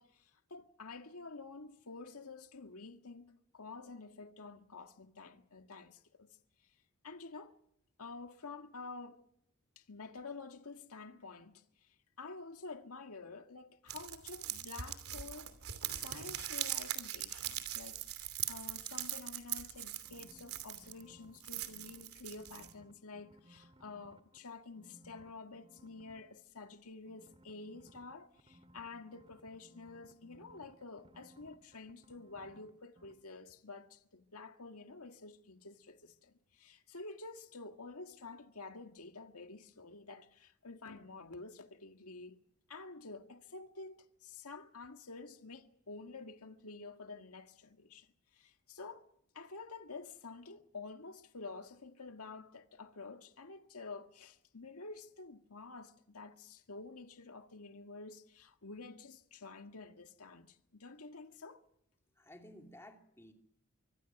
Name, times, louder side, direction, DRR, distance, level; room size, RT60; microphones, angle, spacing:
voice 1, 0.0-6.3 6.6-6.8 7.0-7.5 8.0-9.2 9.8-15.5 15.9-42.4 42.7-49.0 49.3-61.6, left 3 dB, 85° left, 1.8 m, -50 dB
rolling paper roll joint, 13.9-21.0 21.4-22.7, right 12 dB, 80° right, 2.8 m, -41 dB
sound 1, 19.7-22.0 22.3-24.4 24.7-26.2 27.1-32.7 33.0-33.1, right 1 dB, 25° right, 2.3 m, -62 dB
voice 2, 62.2-63.3, left 1 dB, 10° left, 2.6 m, -55 dB
25.5 x 23.5 x 6.0 m
head